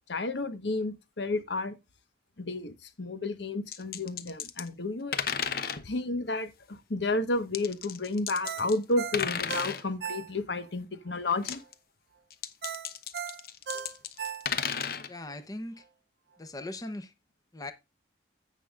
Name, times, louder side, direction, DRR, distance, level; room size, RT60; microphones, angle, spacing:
voice 1, 0.1-1.7 2.4-5.2 5.8-11.6, left 2 dB, 85° left, 1.2 m, -31 dB
sound 1, 3.7-4.7 5.1-5.9 7.5-8.8 9.1-9.8 11.3-11.7 12.3-15.1, left 7 dB, 55° left, 0.8 m, -33 dB
Ringtone, 8.4-10.7 11.1-11.2 12.6-14.9 15.3-15.4, right 7 dB, 60° right, 0.6 m, -38 dB
voice 2, 15.1-15.8 16.4-17.1 17.5-17.7, left 2 dB, 20° left, 0.8 m, -39 dB
16.0 x 5.7 x 2.4 m
head